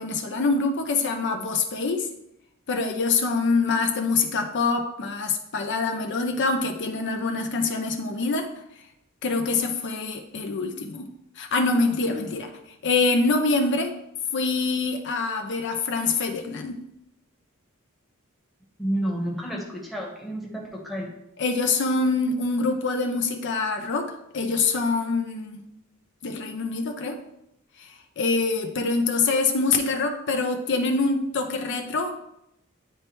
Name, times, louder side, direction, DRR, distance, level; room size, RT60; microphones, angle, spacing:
voice 1, 0.0-2.1 2.7-8.5 9.2-11.1 11.4-12.5 12.8-13.9 14.3-16.8 21.4-25.6 26.2-27.2 27.8-32.1, left 3 dB, 55° left, 5 dB, 0.6 m, -25 dB
voice 2, 18.8-21.1, right 1 dB, ahead, 0 dB, 1.0 m, -30 dB
9.7 x 3.3 x 3.0 m, 0.81 s
head